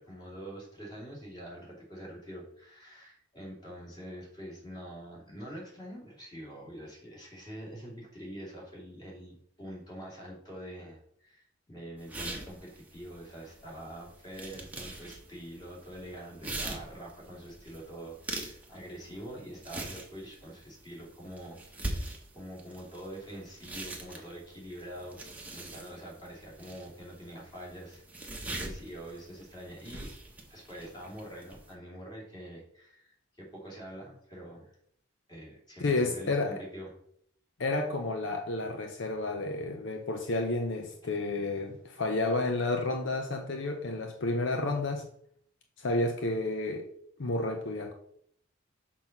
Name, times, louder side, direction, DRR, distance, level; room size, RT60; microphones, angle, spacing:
voice 1, 0.0-25.2 25.5-30.1 30.5-34.8 35.3-36.9, right 1 dB, 20° left, -4 dB, 2.8 m, -45 dB
sound 1, 12.0-31.7, right 2 dB, 10° right, 0.9 m, -43 dB
voice 2, 35.8-36.6 37.6-45.1 45.8-46.9 47.2-47.9, left 2 dB, 70° left, 4 dB, 0.7 m, -31 dB
6.2 x 4.0 x 5.9 m, 0.67 s
head